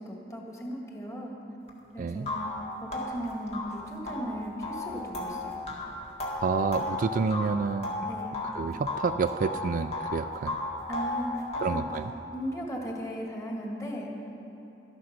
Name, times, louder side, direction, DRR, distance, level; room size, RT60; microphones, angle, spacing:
voice 1, 0.1-1.4 1.9-2.5 2.8-5.6 8.1-8.3 10.9-11.4 11.7-11.8 12.3-14.1, equal, 15° left, -1 dB, 1.8 m, -36 dB
sound 1, 1.7-1.8 2.3-8.6 8.9-10.2 10.5-11.9, left 2 dB, 35° left, 1.9 m, -34 dB
voice 2, 2.0-2.3 6.4-7.9 8.5-10.5 11.6-12.1, right 5 dB, 50° right, 10 dB, 0.3 m, -29 dB
13.5 x 11.5 x 5.9 m, 2.9 s
head